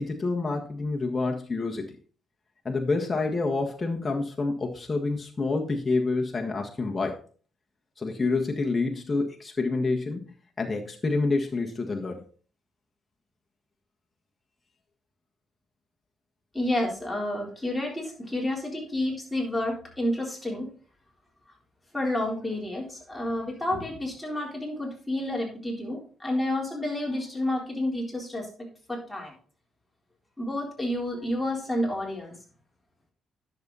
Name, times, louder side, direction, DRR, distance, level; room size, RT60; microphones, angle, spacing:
voice 1, 0.0-1.8 2.6-7.2 8.0-10.2 10.6-12.2, left 3 dB, 25° left, 1 dB, 1.6 m, -28 dB
voice 2, 16.5-20.7 21.9-28.5 28.9-29.3 30.4-32.4, left 1 dB, 5° left, -2 dB, 3.9 m, -30 dB
10.5 x 6.9 x 4.1 m, 0.42 s
cardioid pair, 90°, 0 cm